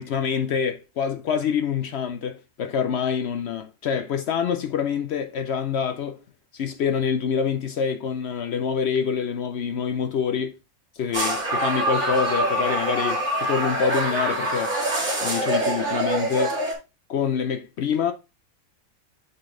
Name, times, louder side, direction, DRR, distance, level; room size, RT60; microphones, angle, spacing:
voice 1, 0.0-6.2 6.5-10.6 11.0-16.7 17.1-18.1, left 7 dB, 65° left, 0.7 m, -26 dB
sound 1, 11.1-16.7, right 1 dB, 55° right, 2.1 m, -25 dB
7.7 x 3.8 x 3.5 m
omnidirectional pair, 1.5 m